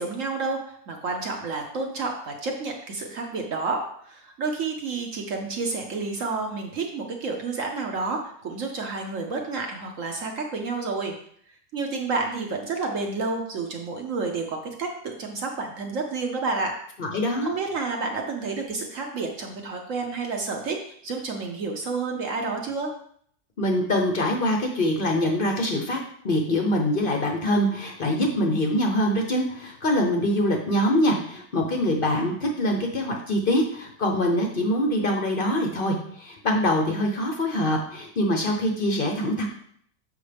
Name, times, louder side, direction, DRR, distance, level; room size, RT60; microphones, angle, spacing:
voice 1, 0.0-11.1 11.7-16.7 17.4-22.9, right 3 dB, 60° right, 2 dB, 0.9 m, -30 dB
voice 2, 17.0-17.5 23.6-26.0 26.2-39.5, left 1 dB, 50° left, 2 dB, 0.6 m, -24 dB
7.1 x 5.3 x 3.4 m, 0.64 s
omnidirectional pair, 2.0 m